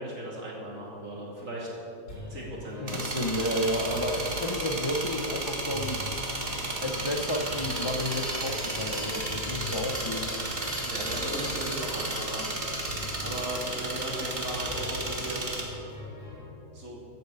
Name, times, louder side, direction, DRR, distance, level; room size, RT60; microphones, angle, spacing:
voice 1, 0.0-1.7 2.3-3.0 3.9-4.1 10.8-12.9 13.2-15.6 16.7-17.0, right 1 dB, 50° right, -4 dB, 3.2 m, -37 dB
sound 1, 2.1-16.5, left 1 dB, 70° left, 4.1 m, -44 dB
voice 2, 2.8-6.0 6.8-10.3, equal, 45° left, 3 dB, 0.3 m, -31 dB
sound 2, 2.9-15.6, right 2 dB, 35° right, 1.9 m, -33 dB
14.0 x 8.0 x 6.7 m, 2.9 s
omnidirectional pair, 1.7 m